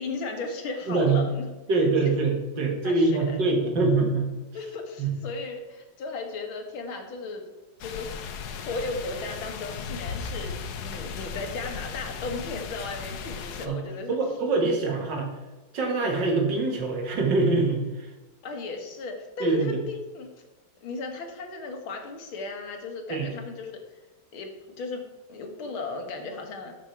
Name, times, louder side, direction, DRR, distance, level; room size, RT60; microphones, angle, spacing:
voice 1, 0.0-1.5 2.8-3.4 4.5-7.5 7.8-8.1 8.5-14.2 18.4-20.3 20.8-23.8 24.3-25.0 25.3-26.7, left 3 dB, 85° left, 4 dB, 2.4 m, -35 dB
voice 2, 0.9-1.2 1.7-4.3 5.0-5.1 13.6-13.8 14.1-15.3 15.7-18.1 19.4-19.8 23.1-23.3, right 3 dB, 60° right, 2 dB, 2.5 m, -24 dB
sound 1, 7.8-13.7, left 6 dB, 60° left, 1.2 m, -36 dB
12.5 x 6.3 x 4.6 m, 1.1 s
omnidirectional pair, 2.2 m